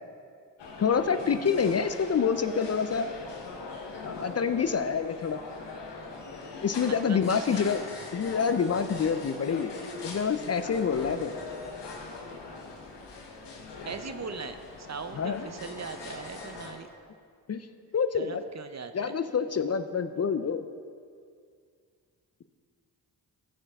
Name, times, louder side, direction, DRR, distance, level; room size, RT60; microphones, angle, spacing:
sound 1, 0.6-16.7, left 3 dB, 80° left, 1.2 m, -41 dB
voice 1, 0.8-3.1 4.1-5.4 6.6-7.8 8.1-9.7 10.0-11.3 15.2-15.5 17.5-17.7 17.9-18.4 18.9-20.7, left 6 dB, 35° left, 10 dB, 0.5 m, -27 dB
voice 2, 6.9-7.7 13.8-16.9 18.1-19.1, right 5 dB, 40° right, 9 dB, 0.7 m, -40 dB
15.0 x 5.7 x 3.6 m, 2.2 s
supercardioid pair, 45°, 42 cm